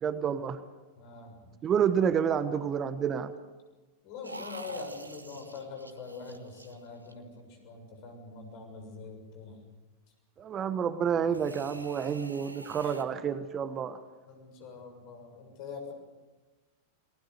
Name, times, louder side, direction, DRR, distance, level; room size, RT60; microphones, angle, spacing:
voice 1, 0.0-0.6 1.6-3.3 10.4-14.0, right 7 dB, 25° right, 13 dB, 1.1 m, -29 dB
voice 2, 1.0-1.9 4.0-9.7 12.8-13.0 14.3-15.9, left 4 dB, 45° left, 4 dB, 6.8 m, -44 dB
sound 1, 4.2-7.4 11.2-13.0, right 2 dB, 80° right, 1.3 m, -46 dB
29.0 x 19.5 x 6.8 m, 1.2 s
figure-of-eight pair, 90°, 0 cm